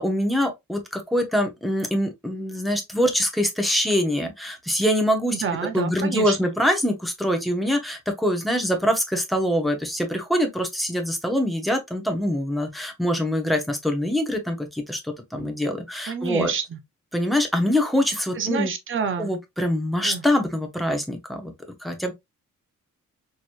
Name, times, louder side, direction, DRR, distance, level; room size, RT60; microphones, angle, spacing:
voice 1, 0.0-5.4 5.7-16.5 17.1-18.7 19.2-21.5 21.8-22.1, equal, ahead, 0.9 m, -24 dB
voice 2, 5.4-6.4 16.1-16.8 18.3-19.3 20.0-20.2, right 6 dB, 40° right, 0.8 m, -28 dB
4.5 x 3.0 x 2.5 m
wide cardioid pair, 150°, 31 cm